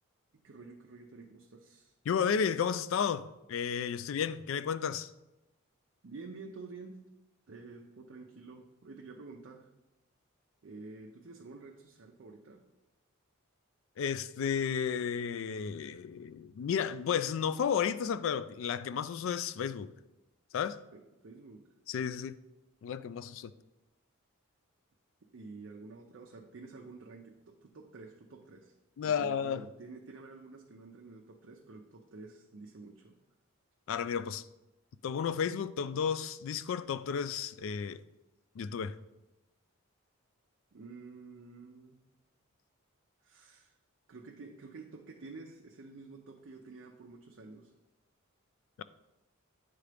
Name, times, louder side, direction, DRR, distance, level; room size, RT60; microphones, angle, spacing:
voice 1, 0.4-1.9 4.0-4.1 6.0-7.0 7.5-9.7 10.6-12.6 20.9-21.6 25.3-28.8 29.0-33.1 40.7-42.0 43.2-43.7 44.1-47.7, right 3 dB, 60° right, 0.5 m, -49 dB
voice 2, 2.1-5.1 14.0-19.9 20.5-20.8 21.9-22.4 22.8-23.5 29.0-29.6 33.9-34.4 35.0-38.0 38.6-39.0 48.8-48.9, left 7 dB, 65° left, 0.3 m, -32 dB
9.5 x 3.7 x 3.4 m
head